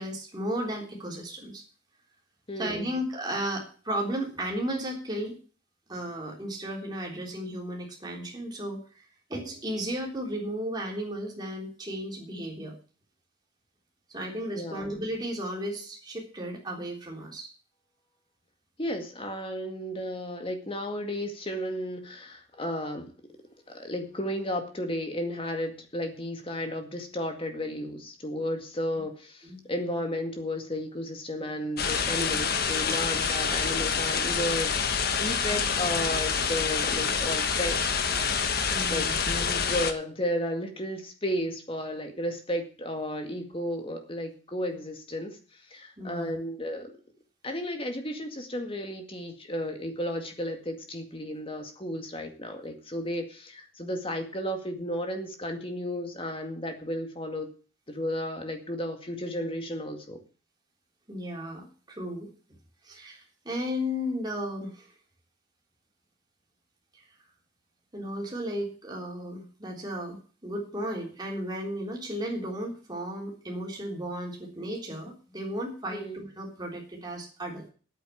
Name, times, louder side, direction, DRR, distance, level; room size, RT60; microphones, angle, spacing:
voice 1, 0.0-1.6 2.6-5.4 5.9-12.7 14.1-17.5 28.9-29.0 29.4-29.6 38.7-39.2 46.0-46.4 61.1-62.3 62.8-64.9 67.0-67.1 67.9-77.7, equal, 20° right, -1 dB, 3.7 m, -34 dB
voice 2, 2.5-3.0 14.5-14.9 18.8-23.1 23.7-37.8 38.9-45.4 45.7-46.9 47.4-57.5 57.9-60.2 75.9-76.2, equal, 30° left, 5 dB, 2.0 m, -33 dB
sound 1, 31.8-39.9, left 6 dB, 50° left, 1.3 m, -27 dB
9.0 x 8.8 x 8.4 m, 0.39 s
head